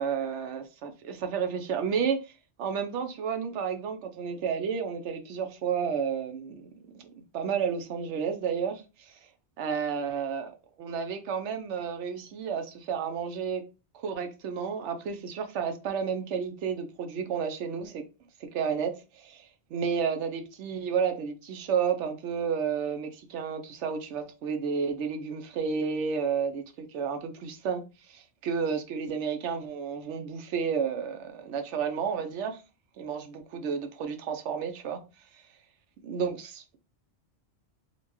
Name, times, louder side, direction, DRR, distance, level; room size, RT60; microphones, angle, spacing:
voice 1, 0.0-2.3 2.6-7.1 7.3-9.2 9.6-13.6 13.9-18.0 18.4-27.8 28.1-32.6 33.0-35.0 36.1-36.8, right 6 dB, 85° right, 0.9 m, -31 dB
4.0 x 2.2 x 2.9 m
omnidirectional pair, 1.2 m